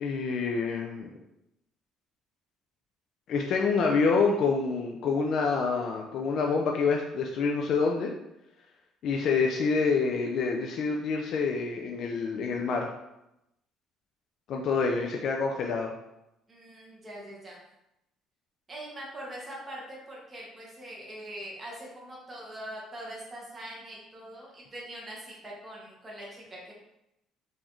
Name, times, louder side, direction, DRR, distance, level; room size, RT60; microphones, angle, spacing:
voice 1, 0.0-1.1 3.3-8.1 9.0-12.9 14.5-15.9, left 4 dB, 50° left, 1 dB, 0.3 m, -27 dB
voice 2, 16.5-17.6 18.7-26.7, right 1 dB, 20° right, -4 dB, 1.0 m, -42 dB
3.9 x 2.6 x 3.0 m, 0.87 s
cardioid pair, 155°, 0 cm